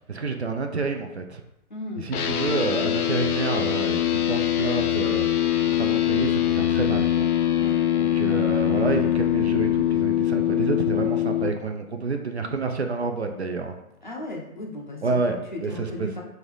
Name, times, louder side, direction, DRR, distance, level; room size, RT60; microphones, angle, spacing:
voice 1, 0.1-1.4 2.0-7.3 8.0-13.8 15.0-16.1, right 4 dB, 50° right, 5 dB, 0.4 m, -29 dB
voice 2, 1.7-2.1 7.6-7.7 8.3-8.4 14.0-15.0 15.3-16.2, left 1 dB, 35° left, -1 dB, 0.5 m, -36 dB
sound 1, 2.1-11.5, left 11 dB, 80° left, 0.6 m, -23 dB
3.5 x 2.7 x 4.7 m, 0.88 s
figure-of-eight pair, 150°, 44 cm